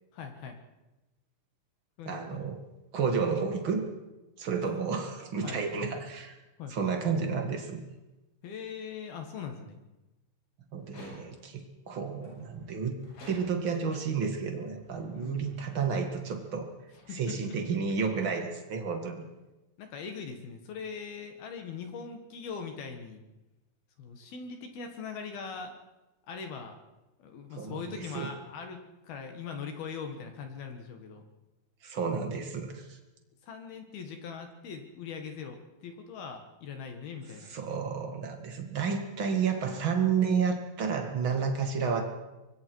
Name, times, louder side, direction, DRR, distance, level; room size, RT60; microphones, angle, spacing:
voice 1, 0.1-0.6 2.0-2.5 4.7-4.8 5.4-5.6 6.6-6.8 8.4-9.8 15.1-15.7 17.1-17.4 18.1-18.2 19.8-23.2 24.0-25.8 26.3-26.8 27.2-31.2 33.4-37.6, left 6 dB, 60° left, 5 dB, 3.2 m, -41 dB
voice 2, 2.0-2.6 2.9-3.8 4.4-6.4 6.7-7.8 10.7-13.0 13.3-16.7 17.1-19.3 27.6-28.3 31.8-33.0 37.5-42.0, right 5 dB, 65° right, 4 dB, 1.2 m, -31 dB
sound 1, 10.8-11.6 12.2-13.9 14.6-18.1, left 2 dB, 75° left, 10.0 m, -55 dB
25.5 x 21.5 x 4.7 m, 1.0 s
omnidirectional pair, 5.6 m